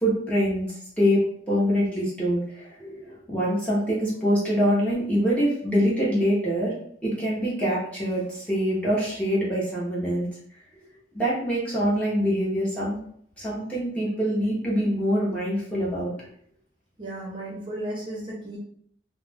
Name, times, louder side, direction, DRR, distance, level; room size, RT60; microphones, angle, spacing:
voice 1, 0.0-0.7 1.0-6.7 7.0-10.3 11.1-13.0 13.4-16.1, equal, 10° left, -8 dB, 0.8 m, -24 dB
voice 2, 17.0-18.6, right 1 dB, 25° right, -4 dB, 0.7 m, -34 dB
2.3 x 2.1 x 3.3 m, 0.64 s
head